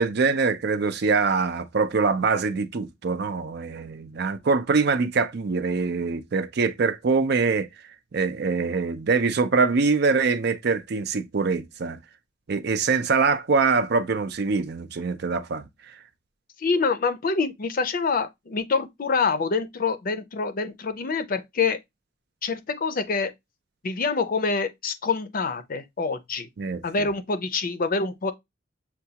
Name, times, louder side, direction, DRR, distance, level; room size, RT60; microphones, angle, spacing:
voice 1, 0.0-7.7 8.1-12.0 12.5-15.6 26.6-27.1, right 4 dB, 60° right, 0.5 m, -24 dB
voice 2, 16.6-21.8 22.4-23.3 23.8-26.5 26.8-28.3, left 4 dB, 50° left, 0.5 m, -26 dB
6.6 x 2.3 x 2.8 m
head